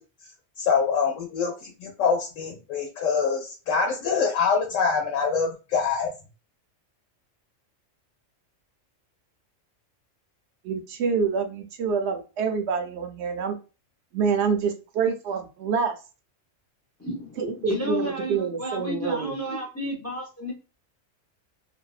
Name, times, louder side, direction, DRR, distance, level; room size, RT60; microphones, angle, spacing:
voice 1, 0.6-6.1, left 5 dB, 80° left, 0 dB, 0.9 m, -25 dB
voice 2, 10.6-13.6 14.1-16.0 17.4-19.4, right 5 dB, 65° right, 5 dB, 0.8 m, -26 dB
voice 3, 17.0-20.5, equal, 25° left, -4 dB, 0.3 m, -32 dB
2.5 x 2.1 x 2.3 m, 0.32 s
omnidirectional pair, 1.3 m